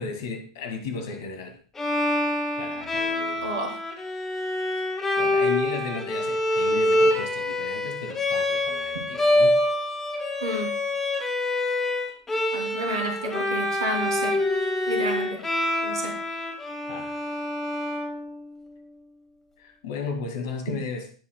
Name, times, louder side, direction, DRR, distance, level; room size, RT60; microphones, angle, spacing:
voice 1, 0.0-1.6 2.1-3.5 5.2-9.6 16.9-17.1 19.6-21.1, left 4 dB, 50° left, 5 dB, 2.2 m, -35 dB
Bowed string instrument, 1.8-18.7, left 1 dB, 15° left, 1.9 m, -26 dB
voice 2, 3.4-3.8 10.4-10.7 12.5-14.3 14.9-15.4 15.8-16.1, right 1 dB, 70° right, 2 dB, 2.9 m, -30 dB
16.5 x 7.4 x 2.3 m, 0.40 s
figure-of-eight pair, 95°, 2 cm